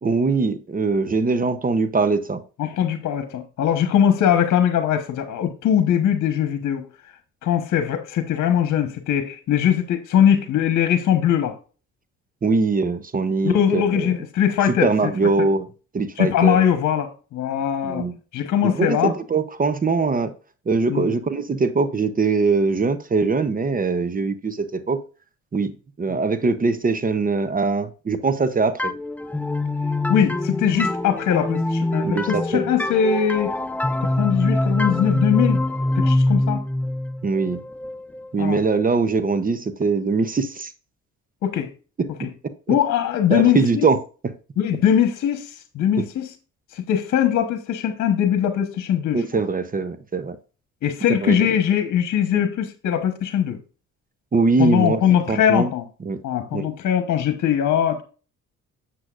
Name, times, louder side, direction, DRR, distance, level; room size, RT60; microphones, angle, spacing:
voice 1, 0.0-2.4 12.4-14.1 14.8-15.7 15.9-16.7 17.8-18.1 18.6-20.3 20.7-25.0 25.5-28.9 32.0-32.6 37.2-37.6 38.3-40.7 42.0-42.3 42.7-42.8 43.3-44.0 49.1-50.4 51.2-51.5 52.3-52.4 54.3-55.7 56.0-56.2 56.5-56.7, right 4 dB, 30° right, 0.8 m, -22 dB
voice 2, 2.6-6.9 7.4-11.5 13.4-15.1 15.4-15.5 16.2-18.1 18.3-19.1 20.9-21.1 30.1-33.6 34.0-35.6 35.9-36.6 38.4-38.6 41.4-41.7 42.2-42.3 42.7-43.9 44.6-46.3 46.7-49.2 50.8-53.6 54.6-55.8 56.2-58.0, left 9 dB, 70° left, 1.2 m, -21 dB
sound 1, 28.8-38.3, left 1 dB, 5° left, 0.5 m, -24 dB
8.1 x 7.5 x 2.5 m
cardioid pair, 90°, 30 cm